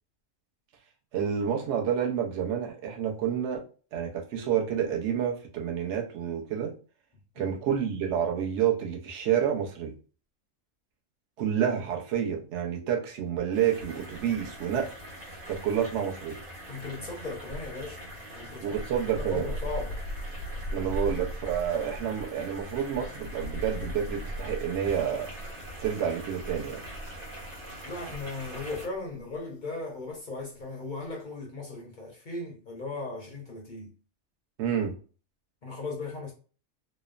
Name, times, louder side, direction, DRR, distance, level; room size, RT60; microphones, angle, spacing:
voice 1, 1.1-3.6 3.9-6.7 7.4-9.9 11.4-14.9 15.5-16.4 18.6-19.5 20.7-25.3 25.8-26.8 34.6-34.9, right 8 dB, 65° right, 0.9 m, -29 dB
sound 1, 13.5-28.9, equal, 90° right, 1.4 m, -44 dB
sound 2, 14.1-14.9 15.1-28.7 28.9-29.2, equal, 90° left, 1.0 m, -39 dB
voice 2, 16.7-18.8 19.1-20.0 27.8-33.9 35.6-36.3, left 3 dB, 55° left, 0.5 m, -37 dB
2.9 x 2.0 x 2.4 m
omnidirectional pair, 1.4 m